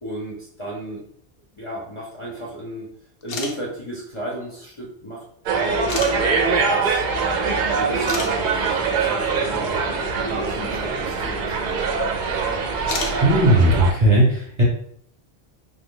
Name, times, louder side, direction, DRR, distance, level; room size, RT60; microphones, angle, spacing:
voice 1, 0.0-1.0 1.5-2.9 3.2-5.2 5.5-6.3 6.6-7.0 7.8-9.7 10.2-11.9, right 1 dB, 35° left, -6 dB, 0.6 m, -34 dB
sound 1, 3.2-3.5 4.6-4.7 5.9-6.1 7.6-7.7 8.1-8.3 11.0-11.1 12.8-13.2, left 4 dB, 70° left, 0.7 m, -29 dB
sound 2, 5.5-13.9, right 4 dB, 60° right, 0.6 m, -23 dB
voice 2, 13.2-14.6, right 1 dB, 30° right, -5 dB, 0.9 m, -16 dB
3.0 x 2.1 x 3.7 m, 0.65 s
omnidirectional pair, 1.1 m